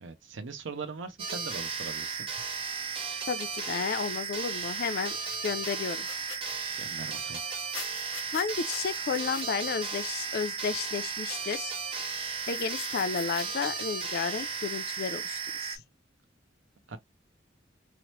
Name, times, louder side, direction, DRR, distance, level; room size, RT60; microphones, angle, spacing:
voice 1, 0.0-2.3 6.8-7.4 16.9-17.0, right 4 dB, 75° right, 0.6 m, -40 dB
sound 1, 1.2-15.8, right 5 dB, 30° right, 0.5 m, -35 dB
voice 2, 3.3-5.2 5.4-6.1 8.3-11.7 12.5-15.8, left 6 dB, 55° left, 0.4 m, -32 dB
sound 2, 5.2-6.6 7.4-9.5 12.4-13.6, left 6 dB, 85° left, 0.9 m, -45 dB
2.9 x 2.1 x 3.0 m
head